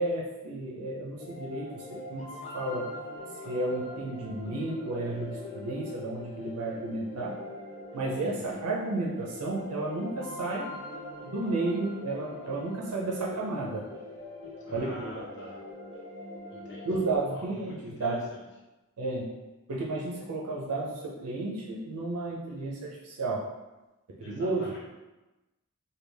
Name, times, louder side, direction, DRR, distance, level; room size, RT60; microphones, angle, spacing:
voice 1, 0.0-2.9 3.5-7.4 7.9-10.7 11.2-13.8 14.7-15.1 16.8-18.2 19.0-19.4 19.7-23.5 24.3-24.7, right 2 dB, 85° right, -3 dB, 0.5 m, -32 dB
sound 1, 1.2-17.2, left 1 dB, 30° left, 0.8 m, -43 dB
voice 2, 8.1-8.6 14.7-15.6 16.5-18.4 24.2-24.8, equal, 55° left, -5 dB, 1.0 m, -46 dB
3.3 x 2.3 x 3.3 m, 1.1 s
head